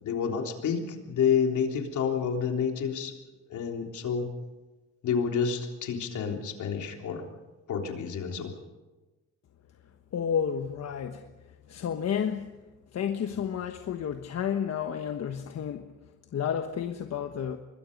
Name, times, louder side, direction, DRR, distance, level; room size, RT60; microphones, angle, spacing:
voice 1, 0.0-3.1 3.5-4.3 5.0-7.3 7.7-8.5, left 7 dB, 75° left, 3.5 m, -29 dB
voice 2, 10.1-11.3 11.7-12.5 12.9-15.9 16.3-17.6, left 8 dB, 60° left, 1.3 m, -31 dB
25.0 x 21.0 x 5.4 m
cardioid pair, 90°, 30 cm